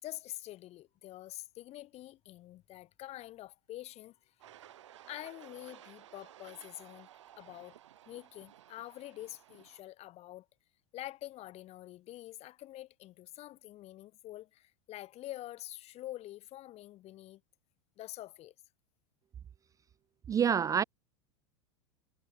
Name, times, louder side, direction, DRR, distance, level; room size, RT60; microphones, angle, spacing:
voice 1, 0.0-4.1 5.1-7.1 7.4-7.8 8.1-10.5 10.9-17.4 18.0-18.5, left 15 dB, 40° left, 7.2 m, -46 dB
sound 1, 4.4-9.8, right 12 dB, 70° right, 4.9 m, -56 dB
voice 2, 20.3-20.8, right 8 dB, 20° right, 0.5 m, -27 dB
hypercardioid pair, 90°, 16 cm